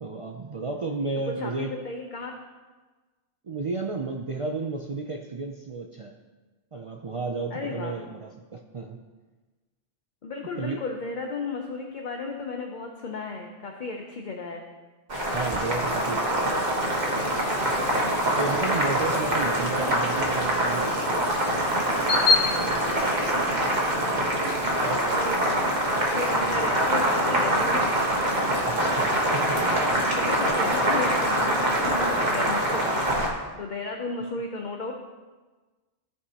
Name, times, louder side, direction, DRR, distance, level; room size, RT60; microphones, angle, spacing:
voice 1, 0.0-1.7 3.4-6.1 6.7-9.0 10.6-10.8 15.3-16.5 17.5-17.8 18.4-20.9 22.0-23.3 23.6-23.8 24.8-25.2 28.6-29.6, right 3 dB, 60° right, 2 dB, 0.3 m, -33 dB
voice 2, 1.3-2.3 7.5-8.0 10.2-14.6 22.6-23.0 24.6-25.4 25.8-28.0 29.0-33.1 33.6-34.9, left 3 dB, 50° left, 2 dB, 0.7 m, -34 dB
Boiling, 15.1-33.3, right 1 dB, 40° right, 1.3 m, -24 dB
sound 1, 17.0-22.4, left 4 dB, 80° left, 0.9 m, -31 dB
14.5 x 4.8 x 2.8 m, 1.3 s
omnidirectional pair, 1.2 m